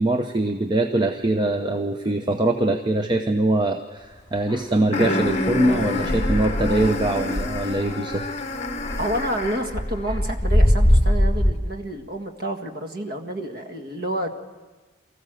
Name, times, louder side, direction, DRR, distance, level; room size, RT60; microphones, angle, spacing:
voice 1, 0.0-8.3, right 1 dB, 25° right, 5 dB, 0.8 m, -23 dB
sound 1, 4.5-4.6 5.3-8.3 8.7-11.5, equal, 20° left, 2.4 m, -21 dB
sound 2, 4.9-9.8, left 2 dB, 35° left, 1.3 m, -28 dB
voice 2, 9.0-14.3, right 1 dB, 55° right, 4 dB, 1.8 m, -29 dB
24.5 x 15.0 x 7.7 m, 1.2 s
head